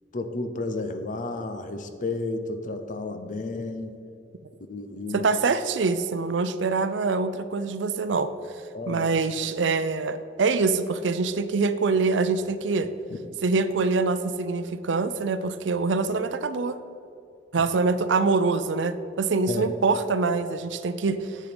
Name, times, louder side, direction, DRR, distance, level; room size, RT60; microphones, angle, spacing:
voice 1, 0.1-4.0 4.7-5.3 8.7-9.1 19.5-19.7, left 2 dB, 45° left, 8 dB, 0.7 m, -32 dB
voice 2, 5.1-8.3 8.9-12.9 13.4-16.8 17.5-21.4, right 4 dB, 75° right, 12 dB, 0.5 m, -25 dB
7.6 x 7.0 x 5.1 m, 2.6 s
head